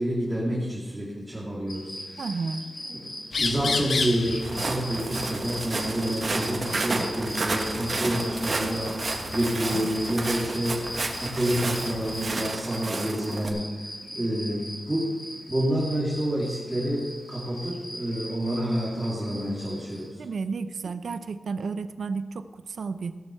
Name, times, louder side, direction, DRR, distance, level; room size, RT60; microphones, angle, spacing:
voice 1, 0.0-2.3 2.9-3.0 3.4-15.1 15.5-20.2, right 1 dB, 10° right, -6 dB, 2.4 m, -28 dB
sound 1, 1.7-20.1, left 1 dB, 35° left, 3.1 m, -40 dB
voice 2, 2.2-2.6 14.1-14.3 20.2-23.1, right 4 dB, 80° right, 11 dB, 0.6 m, -32 dB
sound 2, 3.3-12.4, left 4 dB, 65° left, 0.9 m, -35 dB
Walk footsteps, 4.4-13.5, right 3 dB, 45° right, 1.4 m, -32 dB
16.5 x 6.5 x 6.7 m, 1.4 s
wide cardioid pair, 175°, 0 cm